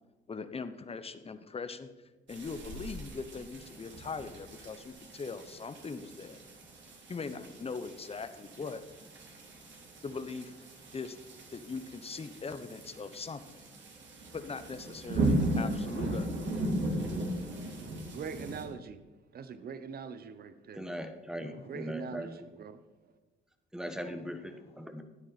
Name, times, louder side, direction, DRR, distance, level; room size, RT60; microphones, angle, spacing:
voice 1, 0.3-1.9 2.3-6.4 7.1-8.8 10.0-10.5 10.9-11.2 11.5-13.7 14.3-16.4 21.4-21.8 24.7-24.9, left 4 dB, 30° left, 11 dB, 1.0 m, -41 dB
sound 1, 2.3-18.6, right 1 dB, 65° right, 3.0 m, -37 dB
voice 2, 18.1-19.0 19.3-20.8 21.6-22.8, right 6 dB, 50° right, 12 dB, 0.9 m, -42 dB
voice 3, 20.7-22.5 23.7-25.0, equal, 5° right, 7 dB, 1.3 m, -40 dB
13.0 x 9.7 x 4.2 m, 1.2 s
cardioid pair, 90°, 20 cm